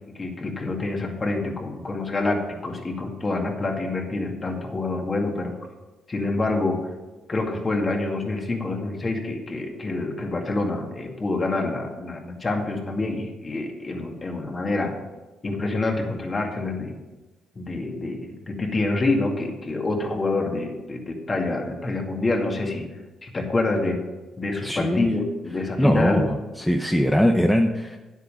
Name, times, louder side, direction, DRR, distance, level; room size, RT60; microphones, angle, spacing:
voice 1, 0.1-5.5 6.1-6.8 7.3-14.9 15.4-17.0 17.6-22.9 23.2-24.0 24.4-26.3, left 2 dB, 30° left, 2 dB, 2.2 m, -27 dB
voice 2, 24.6-25.1 25.8-28.0, equal, 5° left, 3 dB, 0.7 m, -21 dB
9.7 x 8.3 x 5.6 m, 1.2 s
cardioid pair, 90°, 0 cm